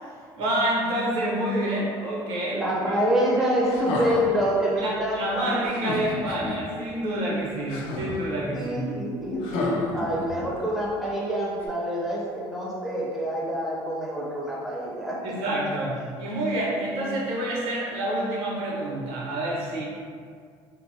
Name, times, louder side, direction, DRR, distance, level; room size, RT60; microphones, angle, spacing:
voice 1, 0.4-3.0 4.8-8.9 15.2-19.8, right 1 dB, 90° right, -4 dB, 0.8 m, -28 dB
voice 2, 2.5-5.6 8.5-15.3, equal, ahead, -6 dB, 0.6 m, -26 dB
sound 1, 3.6-4.5 5.6-6.6 7.7-8.3 9.4-10.6 11.6-11.7, left 2 dB, 85° left, 0.5 m, -32 dB
3.7 x 2.0 x 2.7 m, 2.1 s
cardioid pair, 135°, 9 cm